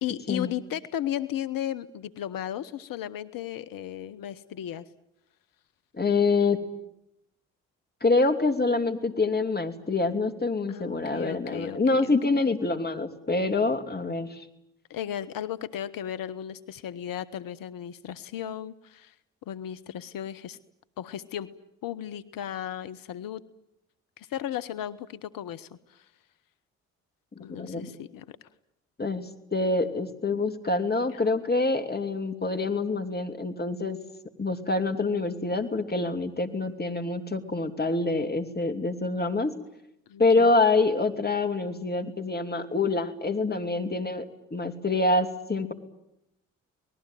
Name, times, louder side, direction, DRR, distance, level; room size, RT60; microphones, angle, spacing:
voice 1, 0.0-4.9 10.7-12.1 14.9-19.1 19.5-20.6 21.0-21.5 21.8-23.4 24.2-26.1 27.4-28.4 31.1-31.2 40.1-40.5, left 11 dB, 60° left, 15 dB, 1.1 m, -35 dB
voice 2, 6.0-6.6 8.0-14.4 27.5-27.9 29.0-34.0 34.4-39.5 40.2-44.2 44.5-45.7, left 3 dB, 25° left, 6 dB, 2.9 m, -26 dB
27.5 x 20.0 x 9.2 m, 0.84 s
hypercardioid pair, 45°, 39 cm